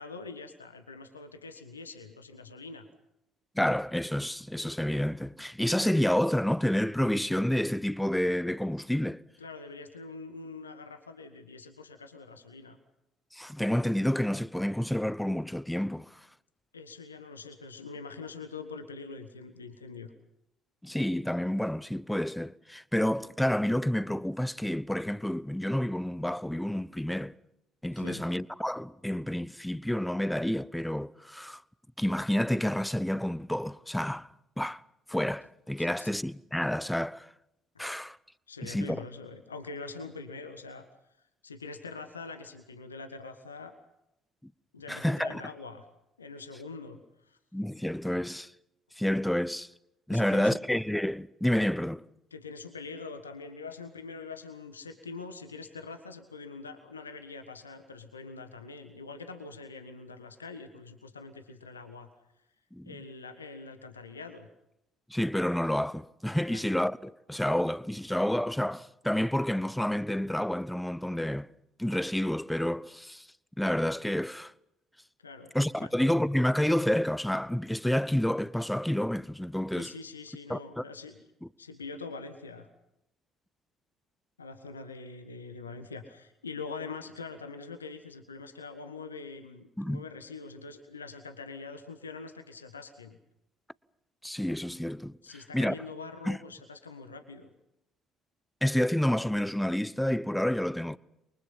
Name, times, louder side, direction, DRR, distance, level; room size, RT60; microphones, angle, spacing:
voice 1, 0.0-2.9 9.4-12.8 16.7-20.1 27.9-28.2 35.8-36.1 37.7-37.9 38.5-40.9 41.4-43.8 44.7-45.9 46.2-47.4 50.1-50.6 52.3-62.1 62.8-64.5 66.5-66.7 75.2-75.9 79.7-81.2 81.6-82.7 84.4-93.2 95.2-97.5, left 4 dB, 85° left, 1.5 m, -44 dB
voice 2, 3.5-9.2 13.3-16.2 20.8-27.3 27.8-31.6 32.0-34.3 34.6-34.8 35.1-37.3 37.8-38.2 38.6-39.0 44.4-44.5 44.9-45.4 47.5-48.5 49.0-49.7 50.1-52.0 62.7-62.9 65.1-71.5 71.8-73.3 73.6-74.5 75.5-79.9 80.5-80.8 89.8-90.0 94.2-95.2 95.5-95.7 96.2-96.4 98.6-101.0, left 1 dB, 5° left, 0.9 m, -29 dB
29.0 x 23.5 x 5.8 m
figure-of-eight pair, 50°, 0 cm